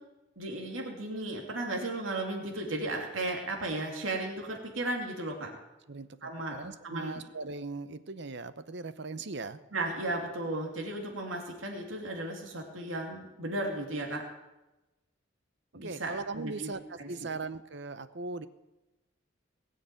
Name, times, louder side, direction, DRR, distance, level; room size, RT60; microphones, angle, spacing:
voice 1, 0.4-5.5 6.2-6.6 6.8-7.2 9.7-14.2 15.7-16.7 17.0-17.1, right 2 dB, 80° right, 0 dB, 2.9 m, -35 dB
voice 2, 6.5-9.6 15.8-18.5, right 3 dB, 60° right, 13 dB, 0.8 m, -39 dB
20.0 x 6.7 x 9.2 m, 1.0 s
head